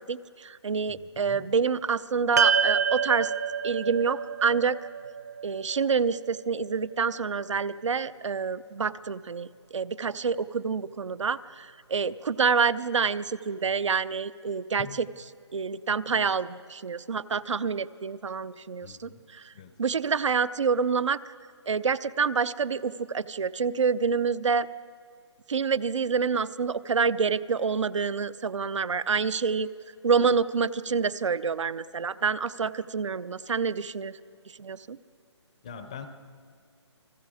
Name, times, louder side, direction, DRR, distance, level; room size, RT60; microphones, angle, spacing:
voice 1, 0.1-3.3 3.6-4.8 5.4-15.1 15.5-19.4 19.8-21.2 21.7-24.7 25.5-29.7 30.0-34.2 34.6-35.0, right 5 dB, 90° right, 15 dB, 0.7 m, -27 dB
voice 2, 0.9-1.5 14.8-15.0 18.8-19.2 19.5-19.8 35.6-36.1, left 7 dB, 15° left, 9 dB, 0.5 m, -43 dB
sound 1, 2.4-6.8, right 6 dB, 35° right, 0.5 m, -28 dB
29.5 x 20.0 x 4.9 m, 2.3 s
hypercardioid pair, 175°, 15 cm